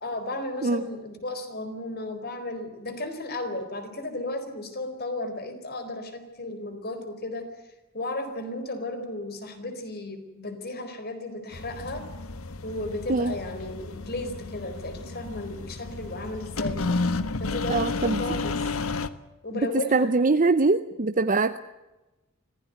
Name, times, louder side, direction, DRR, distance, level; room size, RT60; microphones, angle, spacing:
voice 1, 0.0-7.5 7.9-12.1 12.6-16.9 17.4-18.8 19.4-20.1, left 2 dB, 50° left, 8 dB, 4.3 m, -34 dB
sound 1, 11.5-19.1, left 3 dB, 90° left, 1.3 m, -32 dB
voice 2, 17.7-18.2 19.9-21.6, right 3 dB, 40° right, 11 dB, 0.7 m, -22 dB
25.0 x 16.5 x 9.3 m, 1.1 s
head